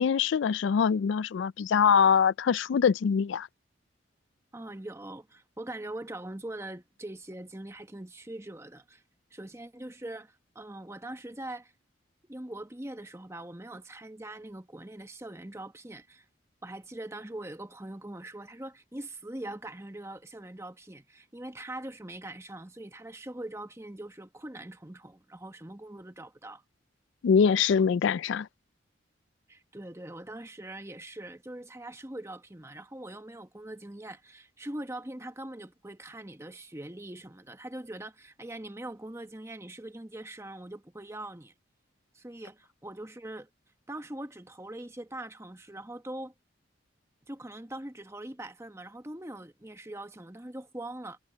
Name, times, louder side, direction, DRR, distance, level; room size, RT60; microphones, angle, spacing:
voice 1, 0.0-3.5 27.2-28.5, left 6 dB, 80° left, 0.3 m, -23 dB
voice 2, 4.5-9.0 9.3-11.7 12.3-16.3 16.6-26.6 29.5-41.5 42.1-43.5 43.9-46.3 47.3-51.2, right 1 dB, 15° right, 1.0 m, -42 dB
head